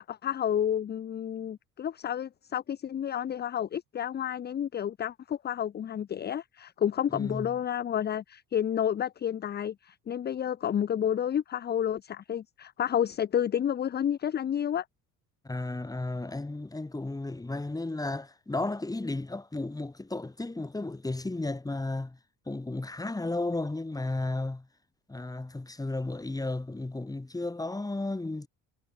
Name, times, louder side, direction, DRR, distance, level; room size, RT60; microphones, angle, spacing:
voice 1, 0.0-14.8, left 9 dB, 30° left, 0.5 m, -30 dB
voice 2, 7.1-7.5 15.4-22.2 22.5-24.7 25.1-28.5, left 2 dB, 10° left, 1.6 m, -33 dB
supercardioid pair, 80°, 33 cm